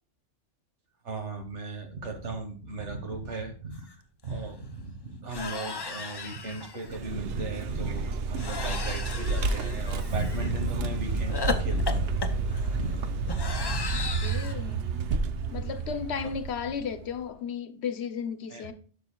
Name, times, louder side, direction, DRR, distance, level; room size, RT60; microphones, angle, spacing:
voice 1, 1.0-4.0 4.2-13.0 13.5-14.0 16.2-16.3 18.5-18.7, right 2 dB, 90° right, 1.7 m, -36 dB
sound 1, 3.9-4.0 4.2-4.5 5.3-7.0 8.4-10.5 11.3-14.5, left 4 dB, 30° left, 0.5 m, -35 dB
Vehicle, 6.8-17.2, right 3 dB, 65° right, 0.8 m, -30 dB
voice 2, 13.9-15.0 15.5-18.7, left 7 dB, 70° left, 1.0 m, -34 dB
11.5 x 6.2 x 2.2 m
omnidirectional pair, 1.2 m